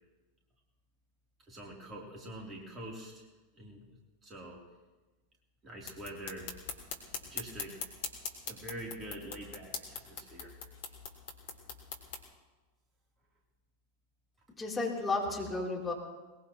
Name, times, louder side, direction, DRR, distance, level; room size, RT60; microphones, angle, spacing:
voice 1, 1.4-3.3 3.5-4.7 5.6-6.5 7.3-7.8 8.4-10.6, right 1 dB, 25° right, -1 dB, 3.5 m, -45 dB
sound 1, 5.8-12.2, left 5 dB, 55° left, 2.8 m, -43 dB
voice 2, 14.6-15.9, left 3 dB, 10° left, -4 dB, 3.8 m, -33 dB
21.5 x 21.0 x 3.1 m, 1.2 s
figure-of-eight pair, 90°, 0 cm